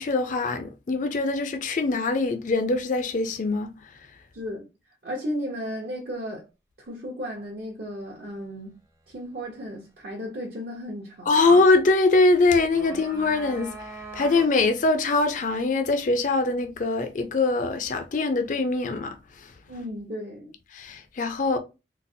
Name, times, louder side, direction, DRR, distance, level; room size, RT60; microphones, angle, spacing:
voice 1, 0.0-3.7 11.3-13.7 14.1-19.2 19.4-19.5 20.7-21.6, left 3 dB, 45° left, 0.4 m, -23 dB
voice 2, 4.3-4.7 5.0-6.5 6.8-8.8 9.1-11.3 19.7-20.5, equal, 60° right, 0.8 m, -34 dB
sound 1, 12.5-14.8, right 2 dB, 15° right, 0.6 m, -41 dB
3.9 x 2.0 x 2.6 m
head